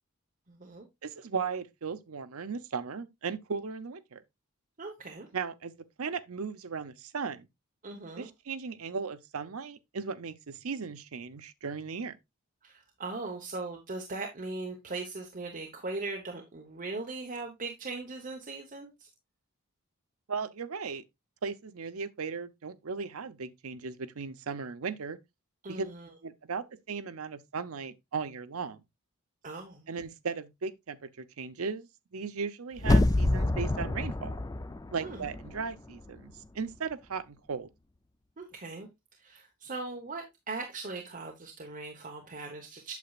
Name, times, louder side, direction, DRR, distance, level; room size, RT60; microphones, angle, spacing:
voice 1, 0.5-0.9 4.8-5.3 7.8-8.3 12.6-19.1 25.6-26.1 29.4-29.9 35.0-35.3 38.4-38.9 39.2-42.9, right 3 dB, 40° right, 1.0 m, -39 dB
voice 2, 1.0-4.2 5.3-7.5 8.2-12.2 20.3-21.0 21.4-25.2 25.7-25.9 26.2-28.8 29.9-34.4 34.9-37.7, right 5 dB, 80° right, 0.7 m, -37 dB
sound 1, 32.8-35.7 36.1-36.2, left 2 dB, 15° left, 0.4 m, -27 dB
8.3 x 6.8 x 2.4 m
head